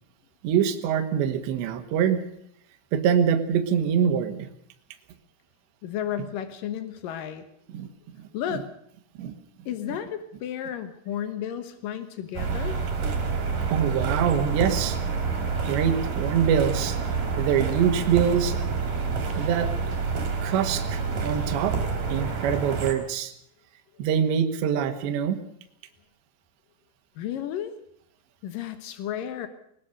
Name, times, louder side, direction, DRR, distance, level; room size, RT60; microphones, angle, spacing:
voice 1, 0.4-2.2 2.9-4.5 7.7-7.9 8.2-8.3 9.2-9.3 13.7-15.0 15.6-17.0 17.4-18.6 19.4-19.7 20.4-21.8 22.1-23.3 24.0-25.4, right 8 dB, 65° right, 6 dB, 3.6 m, -24 dB
voice 2, 5.8-7.5 8.3-8.7 9.7-12.8 27.2-27.8 28.4-29.5, left 10 dB, 85° left, 10 dB, 1.9 m, -33 dB
sound 1, 12.3-22.9, right 5 dB, 45° right, 4.3 m, -28 dB
20.5 x 20.0 x 6.7 m, 0.71 s
omnidirectional pair, 6.0 m